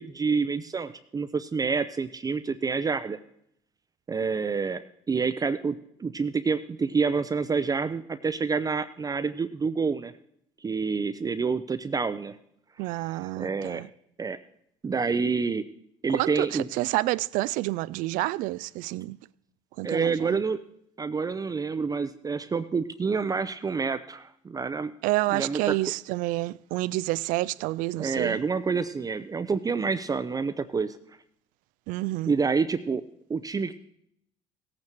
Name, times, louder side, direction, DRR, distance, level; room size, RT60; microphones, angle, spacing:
voice 1, 0.0-3.2 4.1-10.1 10.6-12.4 13.1-13.8 14.2-14.4 14.8-15.7 16.0-16.7 19.8-20.6 21.0-24.9 25.3-25.8 28.0-31.0 32.3-33.0 33.3-33.7, right 5 dB, 25° right, 0.6 m, -28 dB
voice 2, 12.8-13.9 16.1-19.2 19.8-20.4 25.0-28.4 31.9-32.3, right 19 dB, 75° right, 0.4 m, -29 dB
17.0 x 8.8 x 4.5 m
supercardioid pair, 75°, 14 cm